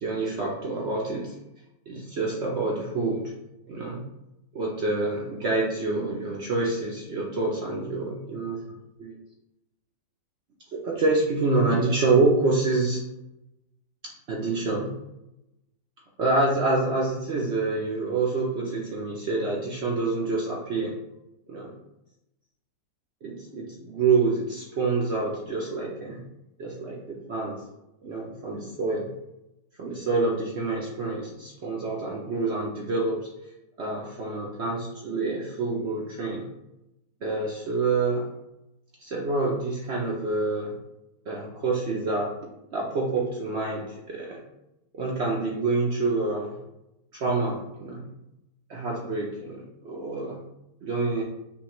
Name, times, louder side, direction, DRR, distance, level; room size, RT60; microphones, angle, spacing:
voice 1, 0.0-1.3 1.9-3.3 3.7-4.0 4.5-9.2 10.7-13.0 14.3-14.9 16.2-20.9 21.5-21.7 23.2-26.2 26.6-27.5 28.0-29.1 29.8-33.2 33.8-36.4 37.2-38.2 39.0-40.7 41.3-42.3 42.7-44.4 44.9-46.6 47.1-48.0 48.7-50.4 50.8-51.2, right 3 dB, 75° right, -3 dB, 0.6 m, -27 dB
5.6 x 2.3 x 3.0 m, 0.89 s
omnidirectional pair, 2.0 m